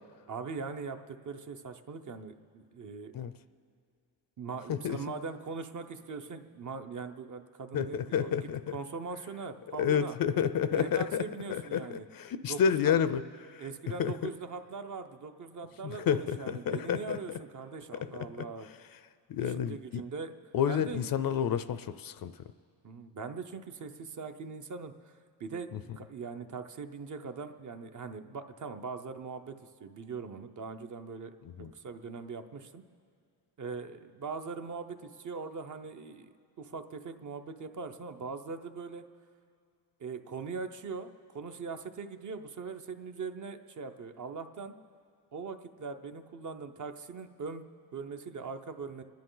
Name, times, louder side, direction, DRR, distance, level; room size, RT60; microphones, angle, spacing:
voice 1, 0.3-3.1 4.4-10.2 10.7-12.1 12.5-13.0 13.6-18.7 19.4-20.3 20.7-21.0 22.8-25.1 25.4-32.8 33.6-39.0 40.0-44.7 45.3-49.0, right 5 dB, 45° right, 7 dB, 0.7 m, -41 dB
voice 2, 7.7-8.6 9.8-13.2 13.5-13.6 14.0-14.1 15.8-17.2 19.3-20.0 20.5-22.3 31.6-31.7, left 8 dB, 55° left, 13 dB, 0.5 m, -30 dB
29.5 x 10.5 x 3.9 m, 2.3 s
cardioid pair, 130°, 43 cm